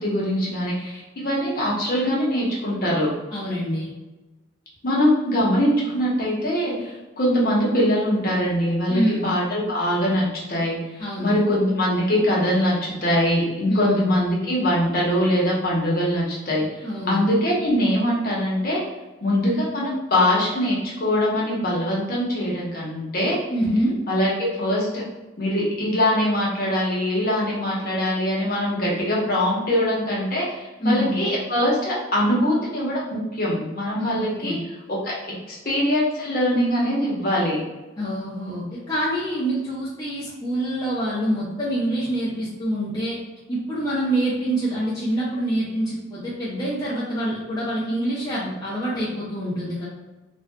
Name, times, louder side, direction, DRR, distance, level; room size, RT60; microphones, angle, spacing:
voice 1, 0.0-3.1 4.8-10.8 11.2-18.8 19.2-23.4 24.1-25.0 25.4-35.1 35.5-37.6, equal, 50° left, -5 dB, 1.0 m, -22 dB
voice 2, 3.3-3.9 8.9-9.3 11.0-11.4 13.7-14.1 16.8-17.3 23.5-24.0 30.8-31.2 34.0-34.6 38.0-43.2 43.5-49.9, right 1 dB, 20° left, -9 dB, 0.6 m, -26 dB
3.5 x 2.4 x 2.2 m, 1.1 s
head